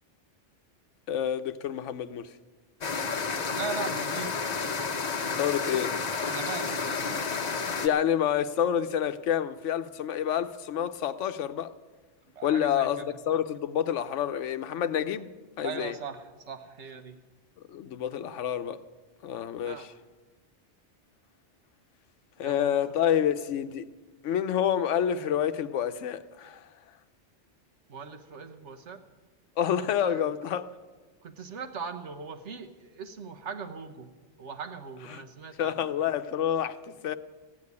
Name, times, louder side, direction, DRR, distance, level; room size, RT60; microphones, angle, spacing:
voice 1, 1.1-2.3 5.3-5.9 7.8-11.7 12.4-15.3 15.6-15.9 17.7-18.8 19.2-19.8 22.4-23.9 24.2-26.6 29.6-30.7 35.6-37.2, left 9 dB, 80° left, 1.0 m, -28 dB
sound 1, 2.8-7.9, left 5 dB, 40° left, 0.9 m, -31 dB
voice 2, 3.5-4.4 6.2-7.1 12.3-13.2 15.6-17.2 19.6-19.9 22.4-22.9 27.9-29.0 29.8-30.3 31.2-34.1 34.4-35.9, right 5 dB, 70° right, 1.4 m, -40 dB
15.5 x 8.6 x 9.5 m
omnidirectional pair, 1.2 m